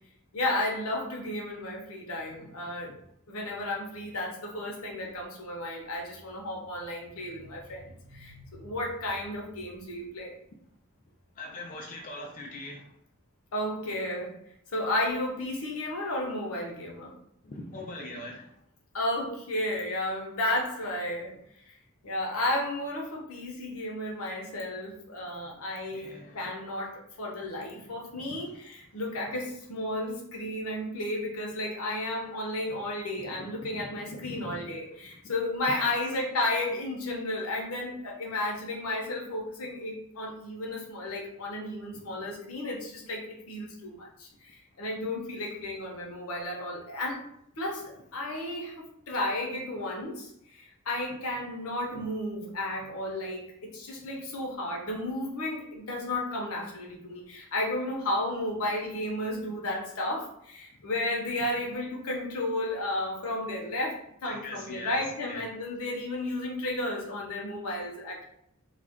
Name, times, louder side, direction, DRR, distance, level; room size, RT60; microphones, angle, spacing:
voice 1, 0.3-2.9 3.3-10.3 13.5-14.4 14.7-17.1 18.9-21.4 22.0-47.3 47.6-68.2, left 1 dB, 85° left, -1 dB, 0.8 m, -33 dB
voice 2, 11.4-12.9 17.4-18.6 25.9-26.5 27.7-27.8 28.2-28.4 33.3-34.8 35.7-35.9 51.9-52.0 64.3-65.4, left 2 dB, 40° left, 0 dB, 0.4 m, -42 dB
2.4 x 2.2 x 3.5 m, 0.73 s
head